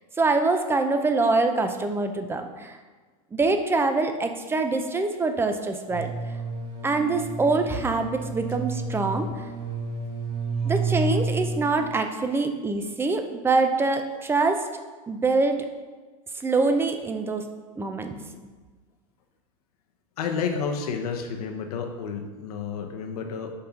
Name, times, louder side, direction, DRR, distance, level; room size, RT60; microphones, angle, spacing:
voice 1, 0.2-2.8 3.3-6.1 6.8-9.4 10.6-14.6 15.1-15.7 16.3-17.4 17.8-18.2, right 3 dB, 10° right, 7 dB, 0.5 m, -24 dB
sound 1, 5.9-11.9, right 4 dB, 65° right, 1.6 m, -30 dB
voice 2, 20.2-23.5, left 6 dB, 80° left, 4 dB, 0.9 m, -30 dB
5.4 x 3.8 x 5.8 m, 1.4 s
supercardioid pair, 125°, 19 cm